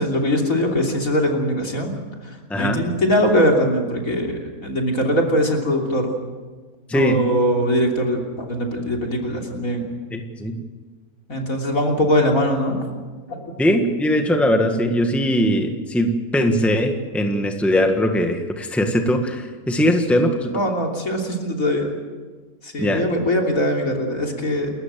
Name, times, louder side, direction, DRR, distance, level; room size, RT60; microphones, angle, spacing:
voice 1, 0.0-1.9 2.2-6.1 6.9-9.9 11.3-12.8 13.3-13.5 20.5-21.9 22.6-24.7, equal, 65° left, 1 dB, 3.6 m, -21 dB
voice 2, 6.9-7.2 10.1-10.5 13.6-20.5 22.8-23.0, equal, ahead, 4 dB, 1.6 m, -20 dB
29.0 x 14.0 x 7.6 m, 1.4 s
omnidirectional pair, 1.5 m